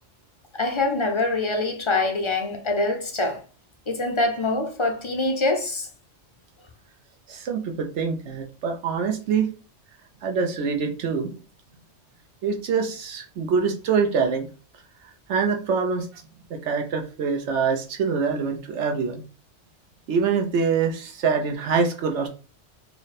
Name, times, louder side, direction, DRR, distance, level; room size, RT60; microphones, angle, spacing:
voice 1, 0.5-3.4 3.9-5.9, left 2 dB, 35° left, 0.5 m, -24 dB
voice 2, 7.3-9.5 10.2-11.3 12.4-14.5 15.3-16.2 16.5-19.2 20.1-22.3, right 5 dB, 85° right, 1.1 m, -25 dB
4.4 x 2.1 x 4.0 m
omnidirectional pair, 1.2 m